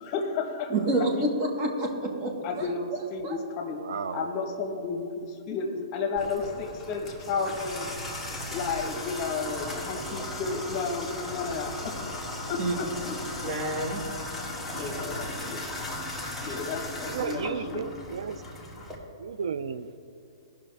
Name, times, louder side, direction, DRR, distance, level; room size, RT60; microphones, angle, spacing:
voice 1, 0.0-0.9 1.2-1.3 2.4-2.8 3.1-3.8 4.1-7.9 8.5-13.2 14.8-15.8 16.4-17.9, left 4 dB, 35° left, 4 dB, 1.2 m, -32 dB
voice 2, 0.7-2.7 3.2-3.3 12.6-12.7 13.4-14.0, right 1 dB, 40° right, 1 dB, 1.5 m, -28 dB
voice 3, 3.8-4.2 14.8-14.9 16.4-16.6 17.0-18.4 19.2-20.0, right 6 dB, 85° right, 13 dB, 0.4 m, -34 dB
Water tap faucet / Bathtub (filling or washing), 6.2-19.0, left 1 dB, ahead, 1.4 m, -37 dB
16.0 x 5.6 x 3.4 m, 2.5 s
hypercardioid pair, 145°, 3 cm